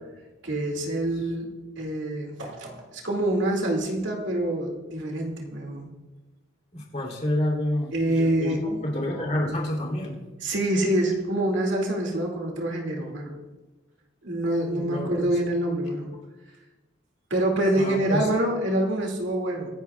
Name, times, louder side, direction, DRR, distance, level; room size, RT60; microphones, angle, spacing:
voice 1, 0.4-1.5 1.8-5.9 7.9-8.6 10.4-13.3 14.2-16.1 17.3-19.7, right 1 dB, 70° right, 0 dB, 2.4 m, -26 dB
voice 2, 6.7-10.2 14.7-15.3 17.7-18.3, left 1 dB, 35° left, -1 dB, 3.1 m, -29 dB
24.5 x 10.5 x 2.4 m, 1.2 s
head